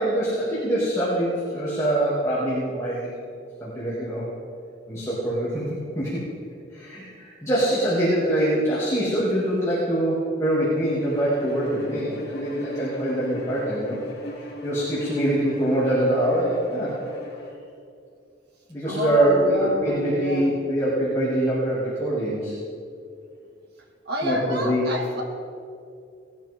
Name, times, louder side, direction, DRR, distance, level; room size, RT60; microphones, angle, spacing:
voice 1, 0.0-3.1 3.6-4.3 4.9-5.7 6.0-6.2 6.7-14.0 14.6-16.9 18.7-22.6 24.2-24.9, right 1 dB, 15° left, -10 dB, 2.7 m, -24 dB
Bowed string instrument, 11.0-17.6, equal, 60° left, 2.4 m, -38 dB
voice 2, 18.9-20.5 24.1-25.2, equal, 60° right, 0 dB, 2.2 m, -28 dB
18.5 x 12.0 x 3.8 m, 2.4 s
head